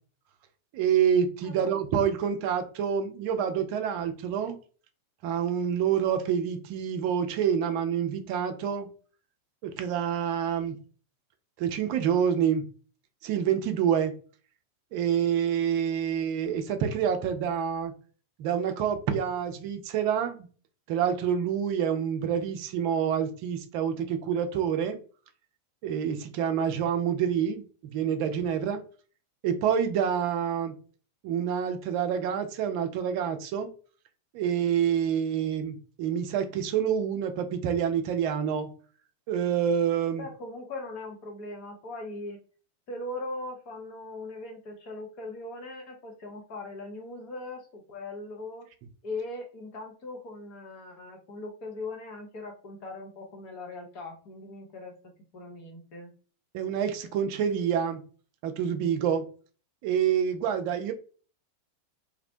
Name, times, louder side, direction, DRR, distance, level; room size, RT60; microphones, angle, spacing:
voice 1, 0.7-4.6 5.2-8.9 9.6-10.8 11.6-12.7 13.2-14.1 14.9-17.9 18.4-20.5 20.9-25.0 25.8-27.6 27.9-28.8 29.4-30.7 31.2-33.7 34.3-38.7 39.3-40.2 56.5-58.0 58.4-59.2 59.8-60.9, right 8 dB, 45° right, 0.4 m, -27 dB
voice 2, 40.2-42.4 42.9-48.7 49.0-54.9 55.3-56.1, left 2 dB, 40° left, 0.8 m, -40 dB
2.5 x 2.1 x 2.6 m
figure-of-eight pair, 90°, 0 cm